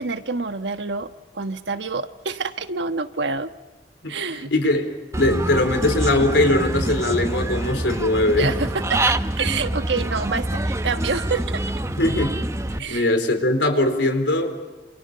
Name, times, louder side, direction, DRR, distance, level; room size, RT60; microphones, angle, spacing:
voice 1, 0.0-3.5 4.1-4.5 8.4-11.6 12.8-13.1, right 4 dB, 90° right, 9 dB, 1.2 m, -27 dB
voice 2, 4.0-8.5 12.0-12.4 12.7-14.7, left 1 dB, 90° left, 6 dB, 4.1 m, -21 dB
Human voice / Bird, 5.1-12.8, right 1 dB, 15° right, 0.7 m, -26 dB
28.5 x 27.5 x 5.7 m, 1.2 s
head